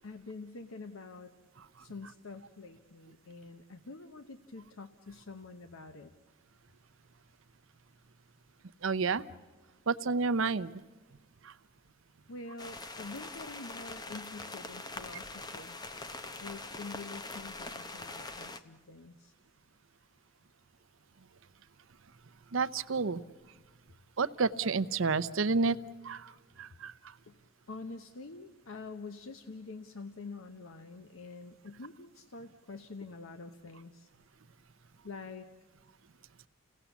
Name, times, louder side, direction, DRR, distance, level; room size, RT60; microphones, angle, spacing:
voice 1, 0.0-1.3 1.8-6.1 12.3-15.8 16.4-19.3 27.3-27.4 27.7-34.1 35.0-35.5, left 3 dB, 75° left, 8 dB, 0.9 m, -46 dB
voice 2, 8.8-9.2 9.9-10.7 11.4-11.5 22.5-23.2 24.2-25.8 26.0-26.3 26.6-27.1, right 4 dB, 70° right, 14 dB, 0.6 m, -30 dB
sound 1, 12.6-18.6, left 3 dB, 20° left, 0.7 m, -43 dB
30.0 x 17.5 x 7.1 m, 1.3 s
head